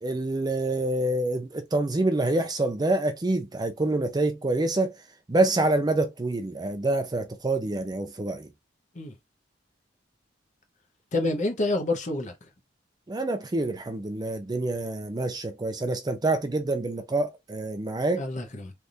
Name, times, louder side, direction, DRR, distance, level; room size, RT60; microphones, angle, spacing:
voice 1, 0.0-4.9 5.3-8.5 13.1-18.2, right 2 dB, 20° right, 0.5 m, -26 dB
voice 2, 11.1-12.4 18.1-18.7, left 2 dB, 40° left, 0.8 m, -28 dB
3.4 x 2.5 x 2.7 m
head